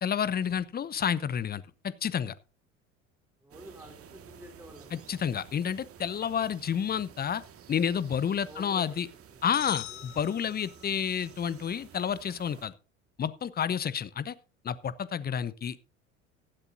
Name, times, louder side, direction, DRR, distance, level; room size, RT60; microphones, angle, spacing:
voice 1, 0.0-2.3 4.9-7.4 7.7-9.1 9.4-12.7 13.2-14.3 14.6-15.8, left 8 dB, 25° left, 0.8 m, -30 dB
voice 2, 3.4-5.2 8.5-10.0 13.6-13.8, right 1 dB, 5° right, 3.7 m, -51 dB
sound 1, 3.5-12.7, right 8 dB, 35° right, 1.8 m, -52 dB
sound 2, 9.5-11.1, left 20 dB, 60° left, 0.7 m, -42 dB
16.5 x 12.0 x 2.6 m
figure-of-eight pair, 70°, 38 cm